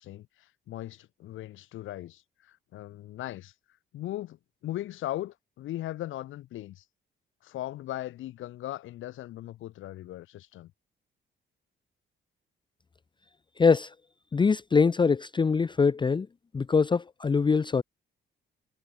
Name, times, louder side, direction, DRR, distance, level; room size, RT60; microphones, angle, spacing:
voice 1, 0.0-3.5 3.9-4.4 4.6-6.8 7.4-10.7, left 14 dB, 85° left, 3.5 m, -38 dB
voice 2, 13.6-13.9 14.3-16.3 16.5-17.8, left 5 dB, 25° left, 0.6 m, -23 dB
cardioid pair, 90°, 20 cm